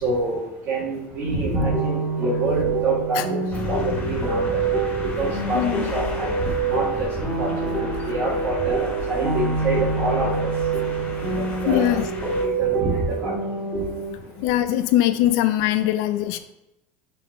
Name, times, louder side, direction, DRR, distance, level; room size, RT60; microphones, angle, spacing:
voice 1, 0.0-4.6 5.2-6.3 6.6-7.1 7.4-10.5 11.3-12.0 12.6-13.3, right 2 dB, 45° right, -7 dB, 2.0 m, -27 dB
sound 1, 1.5-14.1, right 4 dB, ahead, 2.1 m, -26 dB
sound 2, 3.5-12.4, left 4 dB, 30° left, 2.0 m, -33 dB
voice 2, 5.5-5.9 10.7-10.8 11.3-12.1 12.5-12.6 14.4-16.4, left 13 dB, 75° left, 10 dB, 0.5 m, -22 dB
5.6 x 4.1 x 4.6 m, 0.91 s
supercardioid pair, 120°, 6 cm